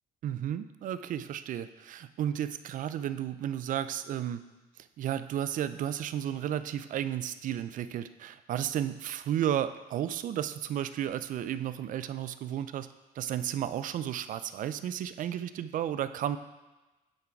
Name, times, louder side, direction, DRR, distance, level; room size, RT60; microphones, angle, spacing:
voice 1, 0.2-4.4 4.8-12.9 13.2-16.4, right 10 dB, 50° right, 13 dB, 0.4 m, -33 dB
8.8 x 3.8 x 4.6 m, 1.1 s
cardioid pair, 110°, 17 cm